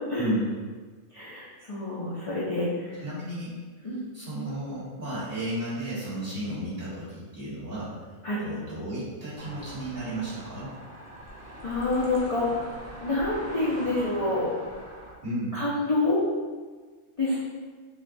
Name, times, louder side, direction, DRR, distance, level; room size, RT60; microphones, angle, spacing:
voice 1, 0.1-0.5 3.0-3.5 3.8-3.9 4.1-7.9 8.4-10.7 15.2-15.5, right 1 dB, 45° right, -9 dB, 1.6 m, -33 dB
voice 2, 1.1-3.0 3.8-4.0 8.2-8.4 11.6-12.7 13.0-14.5 15.5-16.2 17.2-17.4, left 2 dB, 40° left, -8 dB, 0.5 m, -27 dB
sound 1, 9.4-15.1, right 1 dB, 25° right, 0.4 m, -42 dB
6.0 x 2.3 x 2.6 m, 1.4 s
omnidirectional pair, 1.5 m